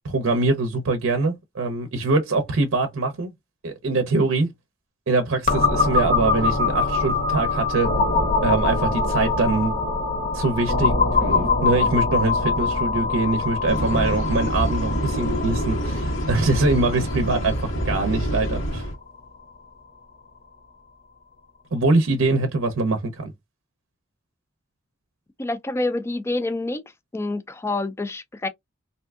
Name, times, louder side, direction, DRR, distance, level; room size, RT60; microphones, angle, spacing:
voice 1, 0.0-3.3 3.6-4.5 5.1-7.9 8.4-9.7 10.3-17.6 17.9-18.9 21.7-23.3, right 3 dB, 85° right, 0.6 m, -23 dB
sound 1, 5.5-19.0, left 3 dB, 45° left, 0.9 m, -24 dB
sound 2, 13.7-18.9, equal, 85° left, 1.3 m, -26 dB
voice 2, 25.4-26.8 27.1-28.5, left 2 dB, 15° left, 0.3 m, -27 dB
3.4 x 2.6 x 2.3 m
head